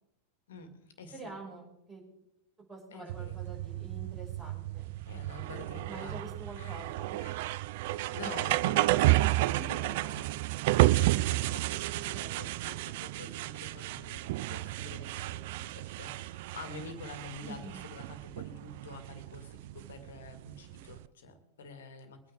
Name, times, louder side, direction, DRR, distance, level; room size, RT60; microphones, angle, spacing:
voice 1, 0.5-1.3 2.9-3.5 5.0-6.3 6.6-6.7 7.2-7.8 8.1-10.4 10.9-22.2, left 3 dB, 60° left, 8 dB, 2.1 m, -48 dB
voice 2, 1.1-2.0 2.7-4.9 5.9-7.2 8.2-8.4 9.1-10.1 12.1-12.5 17.4-17.8, right 2 dB, 20° right, -2 dB, 5.6 m, -46 dB
sound 1, 3.1-21.0, right 17 dB, 50° right, 0.4 m, -32 dB
22.5 x 9.5 x 3.6 m, 0.86 s
figure-of-eight pair, 90°, 0 cm